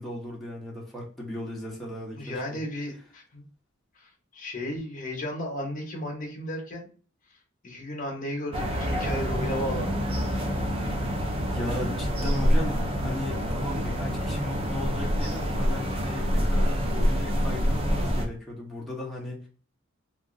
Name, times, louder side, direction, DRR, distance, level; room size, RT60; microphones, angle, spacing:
voice 1, 0.0-2.6 11.5-19.4, left 1 dB, ahead, -4 dB, 0.9 m, -36 dB
voice 2, 2.2-3.4 4.0-6.9 7.6-10.0, left 1 dB, 40° left, 1 dB, 0.9 m, -34 dB
sound 1, 8.5-18.3, equal, 30° right, 0.4 m, -26 dB
2.9 x 2.5 x 2.5 m, 0.40 s
head